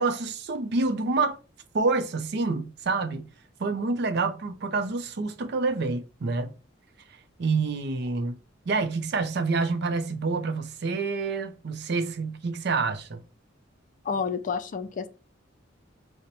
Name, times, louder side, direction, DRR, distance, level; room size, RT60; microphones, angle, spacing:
voice 1, 0.0-1.4 1.7-3.3 3.6-6.5 7.4-8.4 8.7-13.2, right 3 dB, 55° right, 0.5 m, -27 dB
voice 2, 14.0-15.1, left 5 dB, 40° left, 0.3 m, -29 dB
5.1 x 2.1 x 2.9 m
head